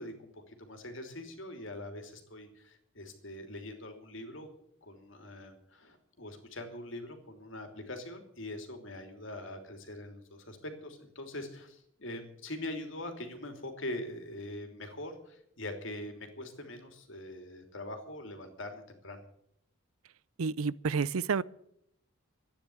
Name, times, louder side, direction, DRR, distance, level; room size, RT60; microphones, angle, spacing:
voice 1, 0.0-4.5 4.8-19.2, left 1 dB, 65° left, 3.0 m, -43 dB
voice 2, 20.4-21.4, right 5 dB, 90° right, 0.6 m, -30 dB
13.5 x 10.0 x 9.4 m
head